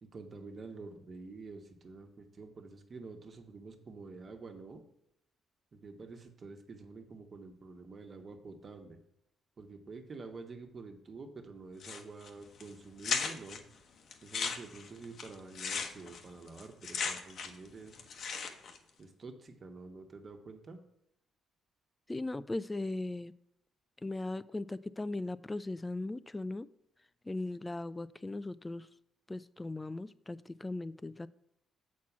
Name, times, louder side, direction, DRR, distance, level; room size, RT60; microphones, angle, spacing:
voice 1, 0.0-4.8 5.7-9.0 9.6-13.6 14.2-18.0 19.0-20.8, right 3 dB, 40° right, 4 dB, 1.3 m, -48 dB
sound 1, 11.8-12.3 12.6-12.7 13.0-13.6 14.1-17.7 17.9-18.8, left 5 dB, 60° left, 0.9 m, -36 dB
voice 2, 22.1-23.3 24.0-26.7 27.2-28.9 29.3-31.3, left 2 dB, 15° left, 16 dB, 0.3 m, -38 dB
7.2 x 4.5 x 6.0 m, 0.80 s
cardioid pair, 90°, 0 cm